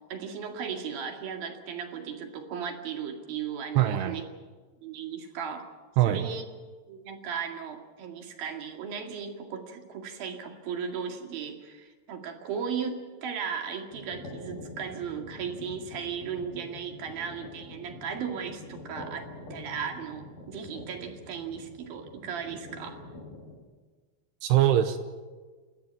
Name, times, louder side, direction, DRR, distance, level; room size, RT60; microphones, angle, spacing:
voice 1, 0.1-4.2 4.8-5.7 6.1-6.5 6.9-23.0, right 7 dB, 60° right, 4 dB, 3.8 m, -36 dB
voice 2, 3.8-4.2 6.0-6.3 24.4-25.0, right 12 dB, 80° right, 8 dB, 3.0 m, -22 dB
sound 1, 13.9-23.6, left 2 dB, 55° left, 6.8 m, -46 dB
29.0 x 13.0 x 9.4 m, 1.4 s
omnidirectional pair, 4.9 m